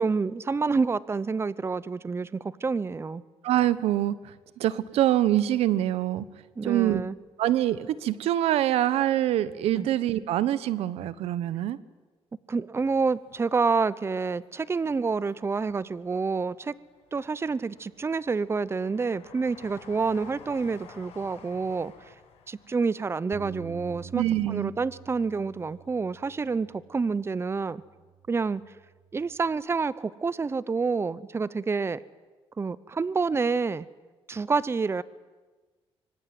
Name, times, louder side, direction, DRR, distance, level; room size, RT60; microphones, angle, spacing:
voice 1, 0.0-3.2 6.6-7.1 9.7-9.9 12.5-16.8 17.1-21.9 22.5-27.8 28.3-28.6 29.1-32.0 32.6-33.9 34.3-35.0, right 4 dB, 25° right, 18 dB, 0.8 m, -28 dB
voice 2, 3.4-6.2 6.6-7.0 7.4-11.8 24.1-24.7, right 13 dB, 90° right, 16 dB, 1.2 m, -25 dB
Train, 13.1-14.4 14.8-15.8 16.3-25.1 25.3-25.4, left 7 dB, 90° left, 6.9 m, -53 dB
Bass guitar, 23.3-29.6, right 7 dB, 55° right, 2.9 m, -48 dB
25.0 x 25.0 x 9.6 m, 1.3 s
cardioid pair, 110°, 10 cm